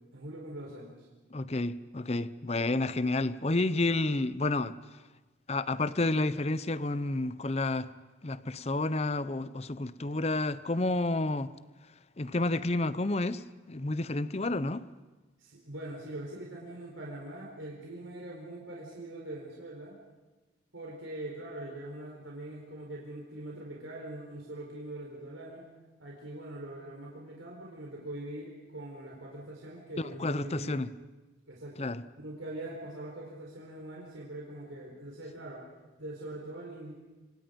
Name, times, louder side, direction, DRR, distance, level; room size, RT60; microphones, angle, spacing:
voice 1, 0.1-1.1 15.4-20.0 20.7-25.6 26.0-30.9 31.5-31.9 32.2-35.7 36.0-36.9, right 1 dB, 90° right, 4.3 m, -42 dB
voice 2, 1.3-4.7 5.5-7.9 8.2-11.5 12.2-13.4 13.7-14.9 30.0-30.9 31.8-32.0, left 2 dB, 35° left, 0.7 m, -30 dB
26.5 x 26.5 x 5.3 m
head